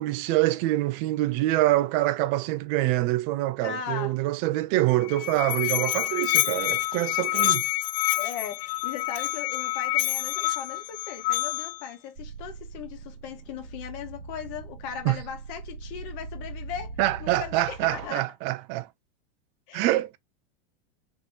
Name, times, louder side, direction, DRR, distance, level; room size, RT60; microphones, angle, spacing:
voice 1, 0.0-7.6 15.1-15.2 17.0-18.9 19.7-20.2, right 16 dB, 35° right, 0.4 m, -25 dB
voice 2, 3.6-4.2 8.1-18.2 19.7-19.9, left 8 dB, 45° left, 1.2 m, -38 dB
Musical instrument, 4.9-11.9, left 17 dB, 75° left, 0.5 m, -27 dB
sound 1, 12.2-18.1, right 3 dB, 55° right, 0.9 m, -41 dB
3.4 x 3.1 x 2.7 m
supercardioid pair, 155°, 29 cm